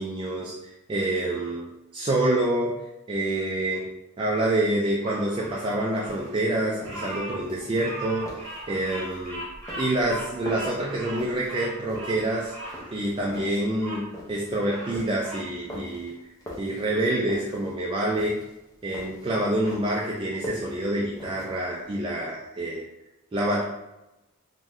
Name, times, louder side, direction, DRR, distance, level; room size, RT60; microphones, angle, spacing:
voice 1, 0.0-2.7 3.1-3.9 4.2-8.3 8.7-9.4 9.8-16.3 16.6-18.4 18.8-22.8 23.3-23.6, right 1 dB, 25° right, -4 dB, 0.3 m, -27 dB
Bird vocalization bird call bird song, 5.0-14.0 14.5-15.5, right 1 dB, 40° right, 1.3 m, -39 dB
sound 1, 5.2-21.9, left 1 dB, 15° left, 0.6 m, -43 dB
2.6 x 2.2 x 3.3 m, 0.96 s
head